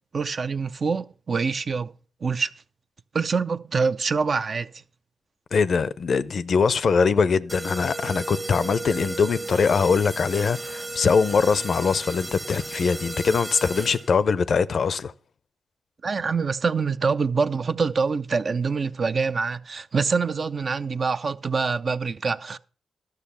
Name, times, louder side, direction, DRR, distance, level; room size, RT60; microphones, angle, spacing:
voice 1, 0.1-1.9 2.2-2.5 3.1-4.7 16.0-22.6, right 5 dB, 55° right, 0.5 m, -25 dB
voice 2, 5.5-15.1, left 5 dB, 65° left, 0.5 m, -22 dB
sound 1, 7.5-14.3, right 2 dB, 30° right, 1.0 m, -35 dB
12.0 x 6.5 x 5.6 m
supercardioid pair, 45°, 0 cm